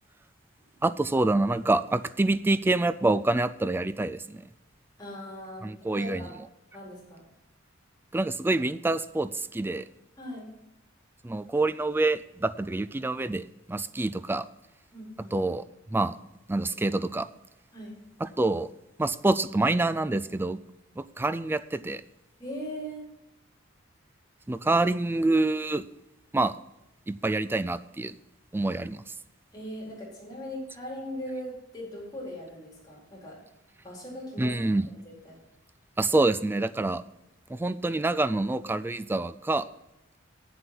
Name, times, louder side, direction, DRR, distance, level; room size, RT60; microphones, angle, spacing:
voice 1, 0.8-4.5 5.6-6.3 8.1-9.8 11.2-14.5 15.3-15.6 15.9-16.2 16.5-17.3 18.2-18.7 19.0-20.6 21.0-22.0 24.5-25.8 26.3-26.6 27.1-28.1 28.5-29.0 34.4-34.9 36.0-37.0 37.5-39.7, right 2 dB, 10° right, 13 dB, 0.3 m, -26 dB
voice 2, 5.0-6.4 6.7-7.2 10.2-10.5 14.9-15.4 17.7-17.9 22.4-23.0 29.5-33.4 33.8-34.8 35.2-35.4, equal, 20° left, -5 dB, 4.4 m, -39 dB
8.5 x 7.8 x 6.0 m, 0.94 s
head